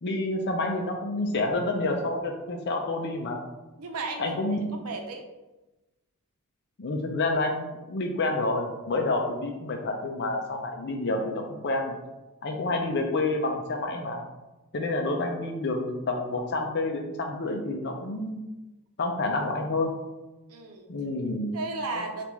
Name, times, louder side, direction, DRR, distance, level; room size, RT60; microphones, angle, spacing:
voice 1, 0.0-3.4 4.2-4.7 6.8-11.9 12.4-14.2 14.7-18.4 19.0-19.9 20.9-21.5, left 2 dB, 50° left, 2 dB, 0.5 m, -28 dB
voice 2, 3.8-5.2 20.5-20.9 21.5-22.2, right 3 dB, 90° right, 4 dB, 0.8 m, -35 dB
6.8 x 2.5 x 3.1 m, 1.1 s
head